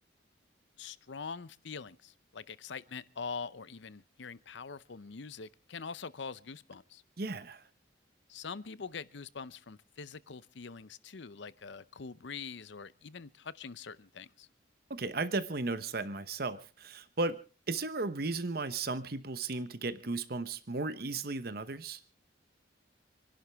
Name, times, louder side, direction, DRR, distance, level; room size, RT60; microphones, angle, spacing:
voice 1, 0.8-7.0 8.3-14.5, left 5 dB, 70° left, 0.7 m, -44 dB
voice 2, 7.2-7.6 14.9-17.4 17.7-22.0, right 3 dB, 55° right, 1.0 m, -35 dB
28.0 x 11.0 x 3.5 m
head